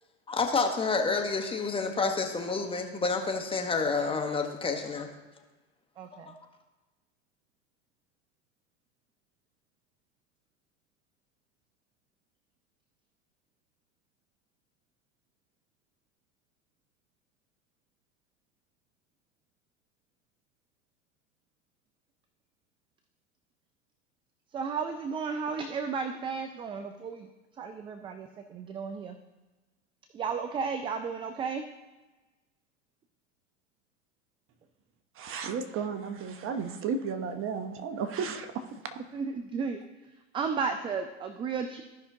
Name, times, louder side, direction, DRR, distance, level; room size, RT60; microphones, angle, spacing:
voice 1, 0.3-5.1 6.3-6.4, left 4 dB, 15° left, 3 dB, 1.1 m, -29 dB
voice 2, 6.0-6.3 24.5-27.3 27.6-29.2 30.1-31.6 39.1-39.8 40.3-41.8, right 5 dB, 15° right, 8 dB, 0.3 m, -33 dB
voice 3, 35.2-38.8, right 6 dB, 35° right, 8 dB, 0.9 m, -33 dB
15.0 x 5.6 x 2.8 m, 1.2 s
hypercardioid pair, 105°, 36 cm